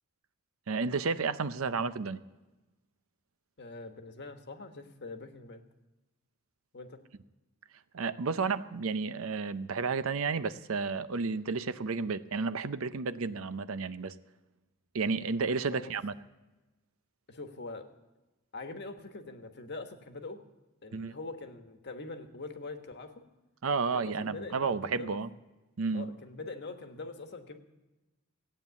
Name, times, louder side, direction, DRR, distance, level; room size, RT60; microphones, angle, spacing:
voice 1, 0.7-2.2 7.9-14.1 14.9-16.1 20.9-21.1 23.6-25.3 25.8-26.1, right 4 dB, 70° right, 13 dB, 0.6 m, -32 dB
voice 2, 3.6-5.6 6.7-7.0 15.7-15.9 17.3-17.9 18.5-20.4 20.8-23.3 23.9-25.2 25.9-27.6, left 3 dB, 50° left, 7 dB, 1.3 m, -43 dB
16.0 x 9.0 x 8.2 m, 1.1 s
head